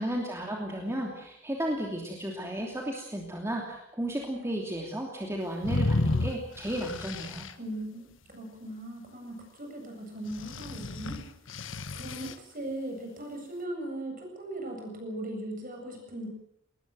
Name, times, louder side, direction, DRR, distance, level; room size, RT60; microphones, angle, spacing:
voice 1, 0.0-7.5, right 1 dB, 15° right, 0 dB, 2.9 m, -34 dB
sound 1, 5.6-7.5 10.3-12.3, left 2 dB, 70° left, 1.4 m, -31 dB
voice 2, 7.6-11.3 12.0-16.3, right 1 dB, 45° right, 2 dB, 7.8 m, -38 dB
22.0 x 20.0 x 7.8 m, 0.78 s
head